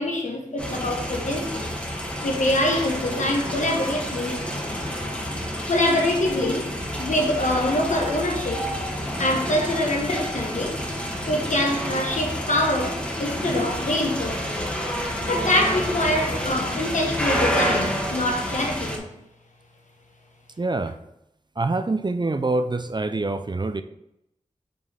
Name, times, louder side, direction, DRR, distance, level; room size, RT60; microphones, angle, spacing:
voice 1, 0.0-1.7 2.2-4.4 5.7-6.7 7.0-8.7 9.2-10.8 11.3-14.7 15.3-19.1, left 1 dB, 75° left, 1 dB, 1.2 m, -24 dB
sound 1, 0.6-19.0, equal, 10° left, 1.5 m, -29 dB
voice 2, 20.6-21.0 21.6-23.8, right 2 dB, 35° right, 9 dB, 0.5 m, -25 dB
5.1 x 3.6 x 5.6 m, 0.83 s
cardioid pair, 45°, 13 cm